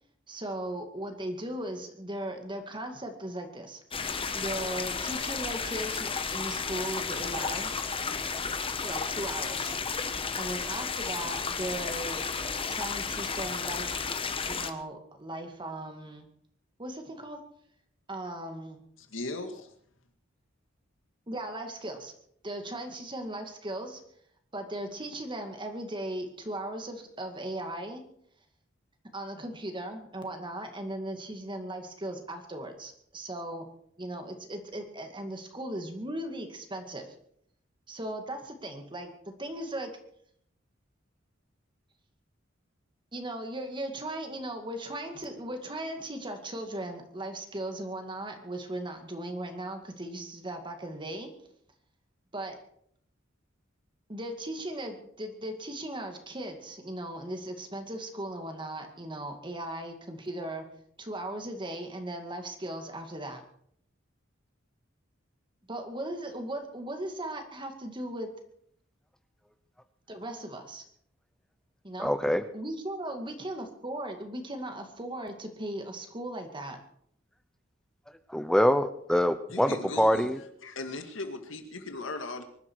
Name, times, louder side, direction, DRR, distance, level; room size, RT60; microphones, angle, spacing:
voice 1, 0.3-3.8 4.3-7.7 8.8-9.7 10.4-12.2 12.7-14.0 14.4-16.3 16.8-17.4 18.1-18.8 21.3-22.1 22.4-24.0 24.5-28.0 29.1-33.7 34.0-37.1 37.9-39.9 43.1-51.3 52.3-52.6 54.1-60.7 61.0-63.4 65.7-68.3 70.1-70.8 71.8-72.1 72.5-76.8, right 1 dB, 25° right, 5 dB, 2.2 m, -37 dB
sound 1, 3.9-14.7, left 5 dB, 30° left, 1.2 m, -33 dB
voice 2, 19.0-19.7 79.5-80.3 80.6-82.4, left 2 dB, 85° left, 7 dB, 2.1 m, -37 dB
voice 3, 72.0-72.4 78.3-80.4, equal, 5° left, 11 dB, 0.7 m, -25 dB
24.5 x 12.0 x 4.7 m, 0.66 s
head